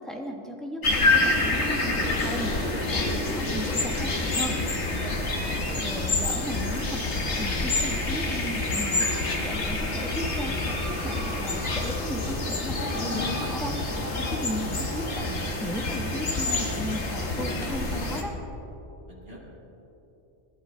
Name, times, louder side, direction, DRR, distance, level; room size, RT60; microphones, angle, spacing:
voice 1, 0.0-2.5 2.9-4.6 5.8-13.8 14.3-18.3, equal, ahead, 1 dB, 1.3 m, -36 dB
sound 1, 0.8-18.2, left 2 dB, 85° left, 1.8 m, -27 dB
voice 2, 5.0-6.0 19.0-19.4, equal, 70° right, -6 dB, 2.8 m, -43 dB
sound 2, 10.4-18.3, equal, 50° left, 3.7 m, -45 dB
20.5 x 11.5 x 3.4 m, 3.0 s
omnidirectional pair, 1.1 m